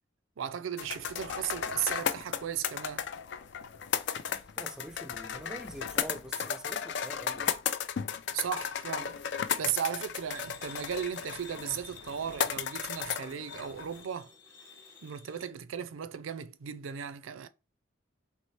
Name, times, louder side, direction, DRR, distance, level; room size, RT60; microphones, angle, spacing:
voice 1, 0.4-3.1 8.3-9.2 9.6-14.3 15.0-17.5, right 9 dB, 90° right, 0.4 m, -36 dB
sound 1, 0.8-14.0, left 8 dB, 60° left, 0.4 m, -35 dB
voice 2, 4.3-7.5, right 1 dB, 5° right, 0.4 m, -45 dB
sound 2, 10.3-15.5, left 5 dB, 15° left, 1.0 m, -53 dB
4.4 x 3.1 x 3.1 m
head